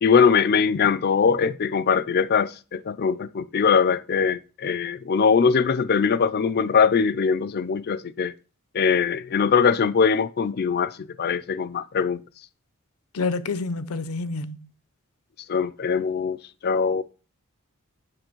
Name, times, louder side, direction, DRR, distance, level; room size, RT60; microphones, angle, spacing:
voice 1, 0.0-8.3 8.7-10.9 11.2-12.2 15.5-16.4 16.6-17.0, left 6 dB, 45° left, 0.4 m, -21 dB
voice 2, 13.1-14.7, left 4 dB, 80° left, 0.7 m, -28 dB
7.8 x 6.2 x 4.5 m
head